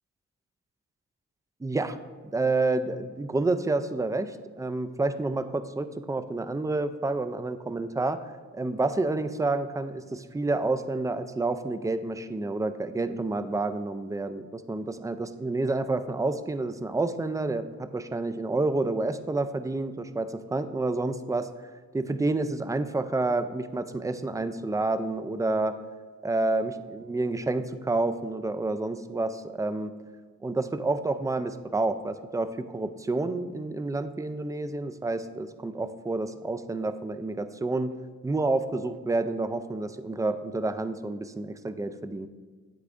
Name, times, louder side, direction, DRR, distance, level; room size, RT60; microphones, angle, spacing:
voice 1, 1.6-2.0 2.3-8.2 8.5-21.5 21.9-25.8 26.2-29.9 30.4-37.9 38.2-42.3, right 2 dB, 10° right, 11 dB, 0.3 m, -29 dB
8.3 x 8.0 x 2.5 m, 1.5 s
cardioid pair, 95°, 31 cm